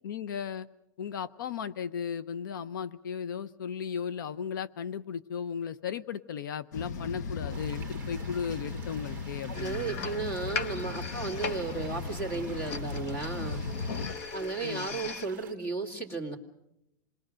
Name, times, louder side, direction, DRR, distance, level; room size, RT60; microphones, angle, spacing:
voice 1, 0.0-0.7 1.0-9.9 14.6-15.0, left 7 dB, 80° left, 16 dB, 0.8 m, -36 dB
sound 1, 6.7-14.1, left 4 dB, 60° left, 1.2 m, -37 dB
sound 2, 7.5-15.5, right 10 dB, 15° right, 1.3 m, -51 dB
sound 3, 9.5-15.3, left 5 dB, 40° left, 1.0 m, -40 dB
voice 2, 9.5-13.6 14.3-16.4, right 4 dB, 20° left, 4 dB, 2.4 m, -34 dB
28.0 x 21.0 x 6.4 m, 0.87 s
supercardioid pair, 180°, 10 cm